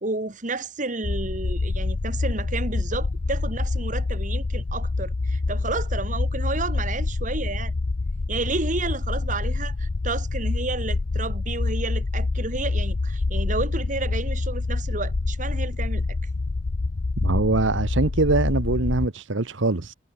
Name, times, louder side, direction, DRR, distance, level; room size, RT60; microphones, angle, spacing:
voice 1, 0.0-7.7 8.3-16.0, right 3 dB, 40° right, 1.6 m, -31 dB
sound 1, 1.0-19.1, left 3 dB, 55° left, 0.6 m, -26 dB
voice 2, 17.2-19.9, right 2 dB, 70° right, 1.1 m, -23 dB
head